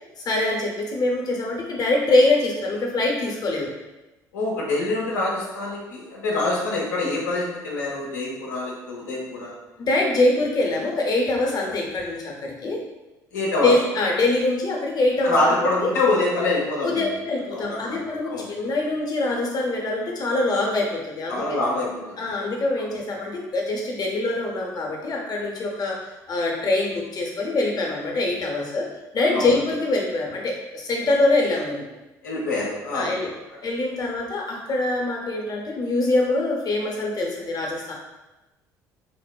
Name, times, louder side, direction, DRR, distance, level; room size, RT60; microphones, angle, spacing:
voice 1, 0.2-3.7 9.8-12.8 13.6-15.9 16.8-21.4 22.2-26.0 26.3-28.9 29.1-31.8 32.9-33.3 33.6-37.9, left 2 dB, 45° left, -1 dB, 0.7 m, -24 dB
voice 2, 4.3-9.5 13.3-13.7 15.2-17.1 17.5-18.5 21.3-22.2 29.3-29.6 32.2-33.1, left 2 dB, 85° left, -3 dB, 0.6 m, -25 dB
3.2 x 2.0 x 2.3 m, 1.0 s
hypercardioid pair, 60°, 9 cm